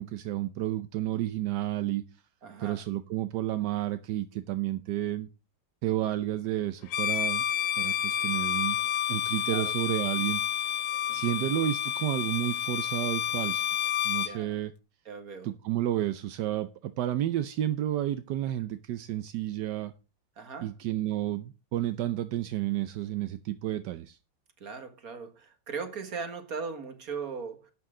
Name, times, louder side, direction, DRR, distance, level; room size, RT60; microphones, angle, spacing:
voice 1, 0.0-2.0 2.6-5.3 5.8-7.4 7.8-8.8 9.1-10.4 11.1-13.6 14.0-14.7 15.4-19.9 20.6-24.2, right 13 dB, 70° right, 1.1 m, -31 dB
voice 2, 2.4-2.8 9.5-9.7 11.1-11.4 14.2-14.6 15.1-15.5 20.4-20.7 24.6-27.7, right 5 dB, 45° right, 2.0 m, -39 dB
Bowed string instrument, 6.9-14.4, left 10 dB, 75° left, 0.7 m, -30 dB
12.0 x 8.5 x 3.8 m
omnidirectional pair, 2.3 m